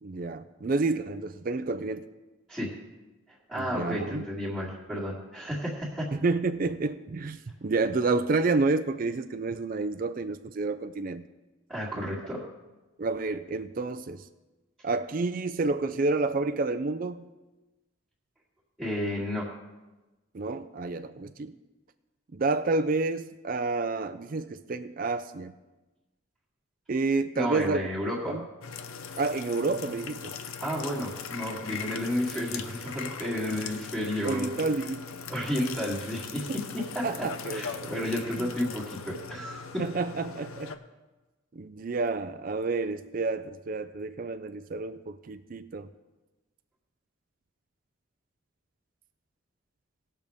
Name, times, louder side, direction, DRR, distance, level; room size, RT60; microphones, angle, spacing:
voice 1, 0.0-2.1 3.6-4.2 6.1-11.3 12.0-12.1 13.0-14.2 14.8-17.3 20.3-21.6 22.3-25.5 26.9-27.8 28.3-28.4 29.2-30.3 34.2-35.1 36.5-36.6 37.0-37.9 38.4-38.5 39.8-40.7 41.5-45.9, right 3 dB, 40° right, 10 dB, 0.4 m, -29 dB
voice 2, 3.3-6.1 11.7-12.4 18.8-19.5 27.4-28.4 30.6-34.5 35.3-36.5 36.9-37.1 37.5-39.8, equal, 5° right, -11 dB, 2.0 m, -32 dB
sound 1, 28.6-40.8, left 6 dB, 80° left, 0.7 m, -40 dB
19.0 x 6.7 x 3.5 m, 1.1 s
head